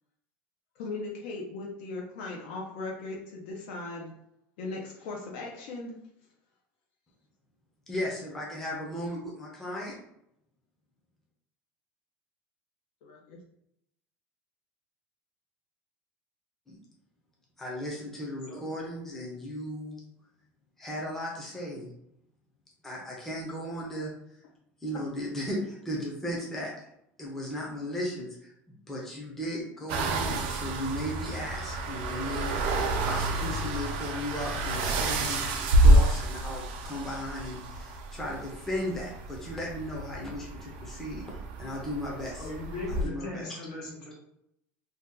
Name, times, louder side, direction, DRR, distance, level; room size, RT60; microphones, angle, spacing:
voice 1, 0.8-4.1 4.6-6.0 13.0-13.4, left 3 dB, 70° left, -1 dB, 0.6 m, -38 dB
voice 2, 7.9-10.0 16.7-16.8 17.6-20.0 20.8-21.9 22.8-24.1 24.8-26.7 27.2-28.5 28.9-32.5 33.0-42.5 43.0-43.5, equal, 5° left, -4 dB, 0.5 m, -36 dB
sound 1, 29.9-43.0, right 1 dB, 85° right, 0.5 m, -28 dB
voice 3, 42.4-44.1, left 2 dB, 55° left, -3 dB, 1.1 m, -38 dB
2.7 x 2.2 x 3.5 m, 0.78 s
cardioid pair, 175°, 6 cm